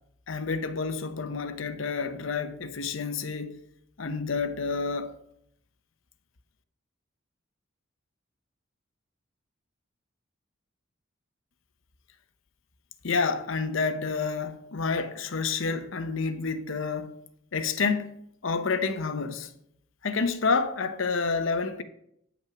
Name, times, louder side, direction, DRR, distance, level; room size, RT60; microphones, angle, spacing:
voice 1, 0.3-3.6 4.0-5.1 13.0-17.2 17.5-18.1 18.4-19.5 20.0-21.8, left 4 dB, 75° left, 0.8 m, -29 dB
9.1 x 6.0 x 5.9 m
head